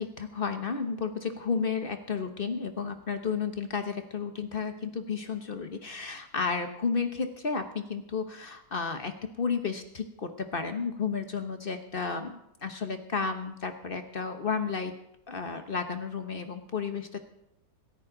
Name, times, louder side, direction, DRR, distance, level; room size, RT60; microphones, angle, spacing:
voice 1, 0.0-14.9 15.3-17.2, left 5 dB, 40° left, 7 dB, 0.9 m, -32 dB
27.0 x 9.5 x 3.9 m, 0.80 s
omnidirectional pair, 2.1 m